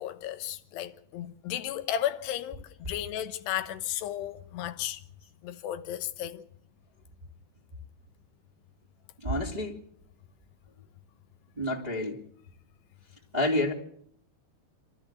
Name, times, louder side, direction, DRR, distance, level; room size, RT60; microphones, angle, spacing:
voice 1, 0.0-5.0 5.4-6.4, left 11 dB, 85° left, 3.2 m, -34 dB
voice 2, 9.2-9.8 11.6-12.2 13.3-13.7, left 1 dB, 10° right, 2.3 m, -28 dB
27.5 x 13.5 x 7.6 m
omnidirectional pair, 4.7 m